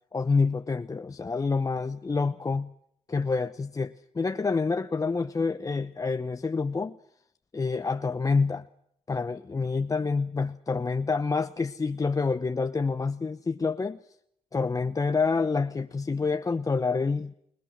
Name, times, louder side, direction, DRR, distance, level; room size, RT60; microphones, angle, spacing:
voice 1, 0.1-2.7 3.1-7.0 7.5-8.7 9.1-14.0 14.5-17.3, left 4 dB, 30° left, 0.9 m, -27 dB
29.5 x 20.5 x 6.4 m
cardioid pair, 70°, 12 cm